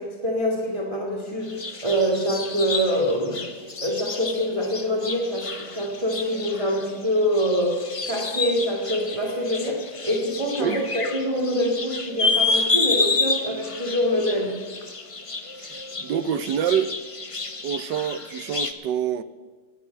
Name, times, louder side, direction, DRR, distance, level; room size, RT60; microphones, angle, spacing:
voice 1, 0.0-3.4 3.8-7.8 8.1-14.5, equal, 15° right, 2.2 m, -25 dB
sound 1, 1.4-18.7, left 3 dB, 50° left, 0.3 m, -29 dB
voice 2, 15.6-16.9 17.6-19.2, right 9 dB, 70° right, 1.3 m, -26 dB
19.0 x 8.2 x 8.2 m
omnidirectional pair, 2.1 m